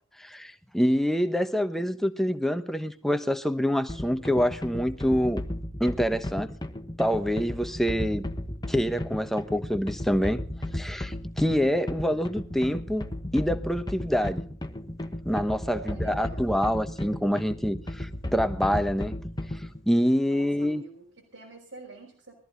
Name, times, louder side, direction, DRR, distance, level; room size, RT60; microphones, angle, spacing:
voice 1, 0.2-5.4 5.8-6.5 7.0-8.3 8.7-10.4 10.7-13.0 13.3-14.4 15.2-19.2 19.9-20.8, equal, ahead, 1.0 m, -26 dB
sound 1, 3.9-19.8, left 1 dB, 20° left, 1.3 m, -35 dB
voice 2, 15.6-16.4 20.3-22.3, right 3 dB, 90° right, 5.4 m, -45 dB
21.5 x 14.0 x 4.0 m
head